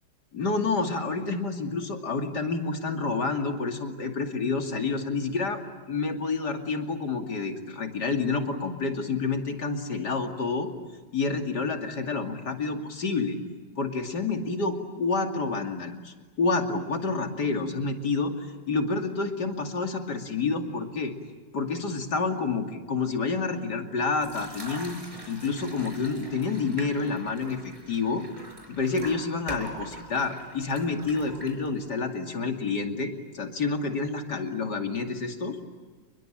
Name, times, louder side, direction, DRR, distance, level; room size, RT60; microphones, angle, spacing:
voice 1, 0.3-5.6 5.9-10.7 11.1-13.4 13.8-21.1 21.5-25.0 25.3-28.2 28.7-35.6, left 4 dB, 55° left, 4 dB, 3.1 m, -29 dB
sound 1, 24.2-31.9, right 1 dB, 15° right, 5.5 m, -43 dB
30.0 x 22.0 x 9.1 m, 1.5 s
omnidirectional pair, 2.2 m